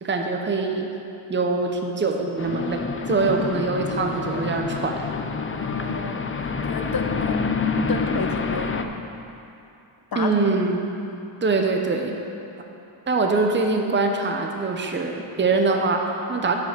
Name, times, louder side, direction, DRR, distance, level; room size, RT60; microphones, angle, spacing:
voice 1, 0.0-1.0 1.3-5.1 10.2-10.9 11.4-12.2 13.1-16.6, right 3 dB, 25° right, 3 dB, 0.7 m, -23 dB
sound 1, 2.4-8.8, left 4 dB, 30° left, 0.4 m, -27 dB
voice 2, 5.5-7.4 7.9-8.9 10.1-10.3, left 4 dB, 45° left, 4 dB, 0.8 m, -31 dB
7.8 x 5.4 x 6.6 m, 2.8 s
wide cardioid pair, 85°, 49 cm